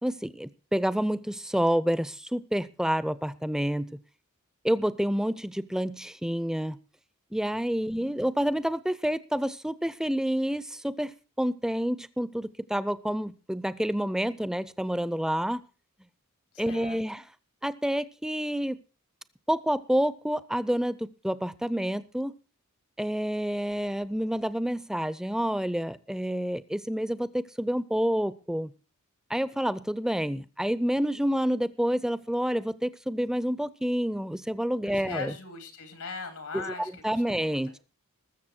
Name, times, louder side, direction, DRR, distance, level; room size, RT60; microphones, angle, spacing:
voice 1, 0.0-4.0 4.6-6.8 7.3-15.6 16.6-17.2 17.6-18.8 19.5-22.4 23.0-28.7 29.3-35.3 36.5-36.7 37.0-37.8, equal, 5° right, 0.5 m, -28 dB
voice 2, 7.8-8.3 16.5-17.0 34.8-37.6, left 4 dB, 90° left, 3.0 m, -40 dB
20.5 x 7.0 x 4.4 m
head